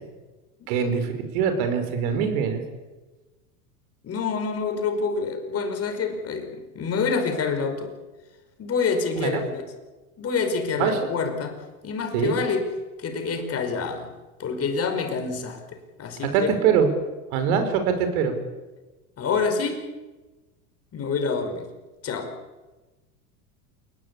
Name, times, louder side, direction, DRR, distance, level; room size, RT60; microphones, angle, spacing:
voice 1, 0.7-2.6 9.2-9.4 10.8-11.0 12.1-12.4 16.3-16.9 17.3-18.3, right 7 dB, 65° right, 8 dB, 5.9 m, -23 dB
voice 2, 4.0-7.9 8.6-9.6 10.2-12.7 13.0-14.1 14.4-15.6 16.0-16.5 19.2-19.8 20.9-21.7 22.0-22.3, left 5 dB, 30° left, 5 dB, 5.5 m, -27 dB
28.0 x 20.0 x 8.6 m, 1.2 s
hypercardioid pair, 105°, 46 cm